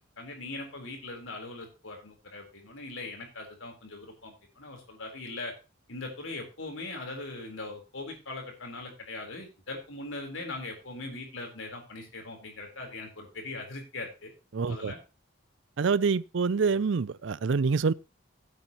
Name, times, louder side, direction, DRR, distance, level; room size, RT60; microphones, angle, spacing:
voice 1, 0.2-5.5 5.9-14.3 14.7-15.0, left 2 dB, 75° left, 4.0 m, -40 dB
voice 2, 14.5-14.9 15.8-17.9, right 5 dB, 65° right, 0.5 m, -26 dB
16.0 x 8.4 x 3.0 m
head